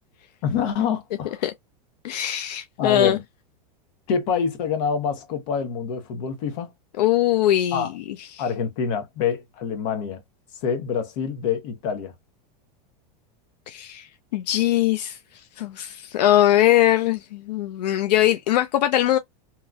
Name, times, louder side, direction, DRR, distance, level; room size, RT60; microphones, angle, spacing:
voice 1, 0.4-1.4 2.8-3.2 4.1-6.7 7.7-7.9 8.4-10.2 10.6-12.1, left 6 dB, 60° left, 1.1 m, -26 dB
voice 2, 2.0-3.2 7.0-8.0 8.3-8.4 13.7-15.2 15.6-19.2, left 13 dB, 85° left, 0.4 m, -21 dB
2.9 x 2.5 x 2.3 m
supercardioid pair, 130°, 21 cm